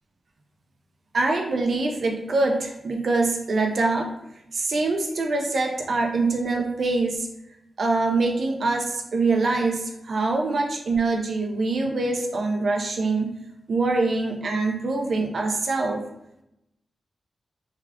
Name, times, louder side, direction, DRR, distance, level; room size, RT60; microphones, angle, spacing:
voice 1, 1.1-4.1 4.5-7.3 7.8-13.4 13.7-16.0, right 3 dB, 70° right, 2 dB, 0.4 m, -24 dB
3.5 x 2.3 x 3.4 m, 0.84 s
cardioid pair, 60°, 0 cm